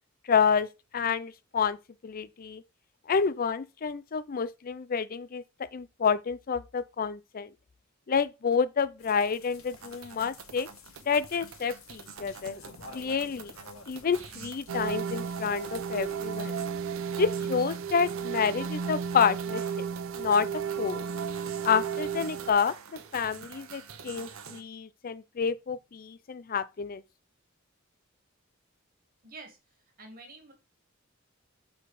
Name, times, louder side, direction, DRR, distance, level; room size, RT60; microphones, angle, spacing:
voice 1, 0.3-0.7 0.9-1.8 2.0-2.6 3.1-5.4 5.7-7.5 8.1-10.7 11.1-12.6 12.9-13.5 13.9-16.6 17.2-19.9 20.2-21.0 21.6-27.0, left 6 dB, 45° left, 0.5 m, -29 dB
sound 1, 9.0-16.6, left 3 dB, 90° left, 1.5 m, -52 dB
sound 2, 9.7-24.6, right 6 dB, 90° right, 0.9 m, -47 dB
sound 3, 14.7-22.5, right 6 dB, 65° right, 0.5 m, -33 dB
voice 2, 29.2-29.6 30.0-30.5, right 3 dB, 45° right, 1.9 m, -47 dB
6.0 x 4.0 x 4.9 m
head